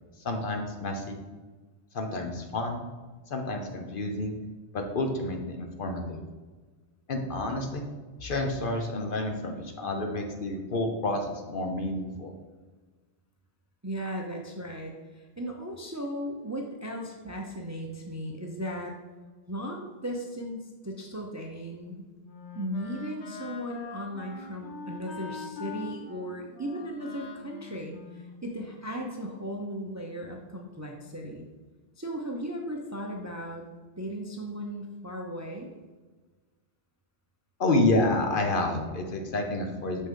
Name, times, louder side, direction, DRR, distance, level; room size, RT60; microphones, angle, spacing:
voice 1, 0.2-1.2 1.9-2.8 3.3-4.4 4.7-6.2 7.1-7.8 8.2-12.3 37.6-40.1, left 2 dB, 55° left, 3 dB, 0.9 m, -29 dB
voice 2, 13.8-18.9 19.5-22.1 22.5-31.5 32.0-33.6 34.0-35.7, equal, 20° right, 1 dB, 0.5 m, -36 dB
Wind instrument woodwind instrument, 21.8-28.9, left 5 dB, 80° left, 1.2 m, -43 dB
6.2 x 5.6 x 3.7 m, 1.3 s
omnidirectional pair, 1.1 m